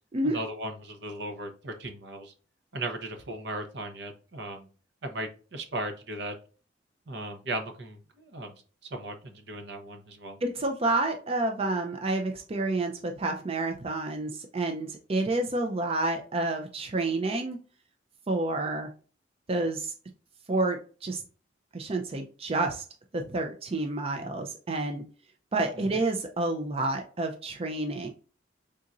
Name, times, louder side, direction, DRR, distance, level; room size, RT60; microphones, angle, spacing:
voice 1, 0.2-2.3 2.7-4.7 5.0-6.3 7.1-8.5 8.8-10.4 25.8-25.9, right 1 dB, 70° right, 6 dB, 0.8 m, -37 dB
voice 2, 10.4-17.6 18.3-18.9 19.5-19.9 20.5-21.2 21.7-22.8 23.1-25.0 25.5-28.1, right 2 dB, 35° right, 4 dB, 0.5 m, -29 dB
4.2 x 3.7 x 2.5 m, 0.37 s
head